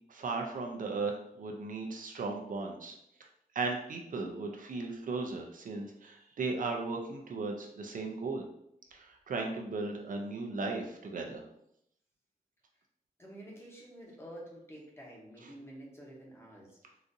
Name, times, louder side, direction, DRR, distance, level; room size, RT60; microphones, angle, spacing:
voice 1, 0.1-3.0 3.5-8.4 8.9-11.4, right 3 dB, 65° right, 2 dB, 0.4 m, -36 dB
voice 2, 13.2-17.0, right 1 dB, 15° left, -3 dB, 0.8 m, -49 dB
3.9 x 2.4 x 2.6 m, 0.76 s
wide cardioid pair, 160°, 15 cm